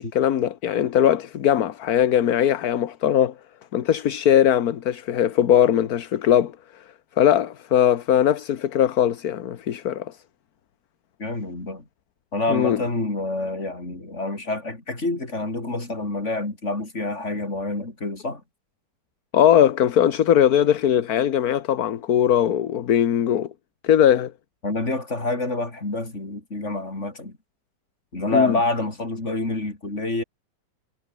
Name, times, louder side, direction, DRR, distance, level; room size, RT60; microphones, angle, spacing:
voice 1, 0.0-3.3 3.7-6.5 7.2-10.2 12.5-12.8 19.3-23.5 23.8-24.3 28.3-28.6, left 10 dB, 60° left, 1.5 m, -20 dB
voice 2, 11.2-11.9 12.3-18.4 24.6-27.4 28.1-30.2, left 2 dB, 40° left, 5.2 m, -27 dB
omnidirectional pair, 1.9 m